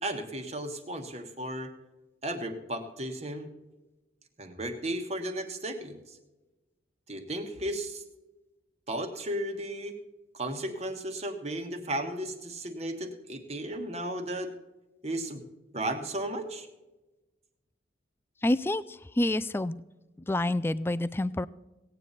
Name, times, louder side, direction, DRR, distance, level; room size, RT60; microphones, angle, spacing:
voice 1, 0.0-1.7 2.2-3.5 4.4-6.2 7.1-8.0 8.9-10.0 10.3-14.5 15.0-15.4 15.7-16.7, right 1 dB, 35° right, 6 dB, 1.3 m, -34 dB
voice 2, 18.4-18.8 19.2-19.8 20.3-21.5, left 1 dB, 15° left, 15 dB, 0.3 m, -27 dB
17.0 x 9.0 x 4.1 m, 1.1 s
head